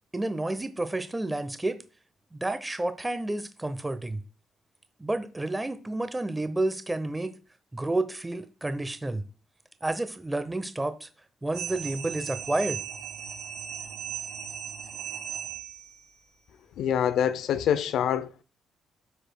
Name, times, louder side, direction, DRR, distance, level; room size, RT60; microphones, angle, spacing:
voice 1, 0.1-1.8 2.3-4.2 5.0-7.3 7.7-9.2 9.8-11.1 11.4-12.8, right 2 dB, 15° right, 0.7 m, -30 dB
sound 1, 11.5-16.0, right 8 dB, 80° right, 2.7 m, -37 dB
voice 2, 16.8-18.4, left 9 dB, 80° left, 0.5 m, -25 dB
12.0 x 5.0 x 2.2 m
cardioid pair, 90°, 0 cm